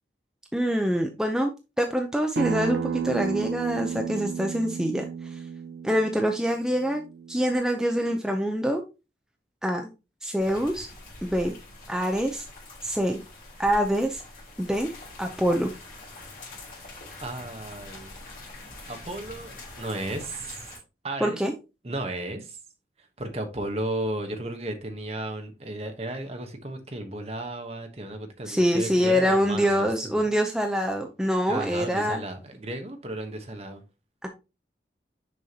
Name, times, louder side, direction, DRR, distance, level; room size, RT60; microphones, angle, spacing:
voice 1, 0.5-1.5 1.8-5.4 5.8-7.0 7.3-8.8 9.6-9.9 10.2-10.9 11.2-11.5 11.9-12.5 12.8-13.2 13.6-14.2 14.6-14.9 15.2-15.7 21.2-21.5 28.5-32.2 34.2-34.3, equal, 5° right, 0.5 m, -25 dB
Acoustic guitar, 2.4-7.6, right 7 dB, 75° right, 0.4 m, -33 dB
sound 1, 10.4-20.8, left 2 dB, 50° left, 3.0 m, -44 dB
voice 2, 17.2-18.2 18.9-20.6 21.0-21.4 21.8-22.6 23.2-30.3 31.5-33.8, right 1 dB, 35° right, 1.0 m, -34 dB
6.3 x 5.6 x 2.8 m
head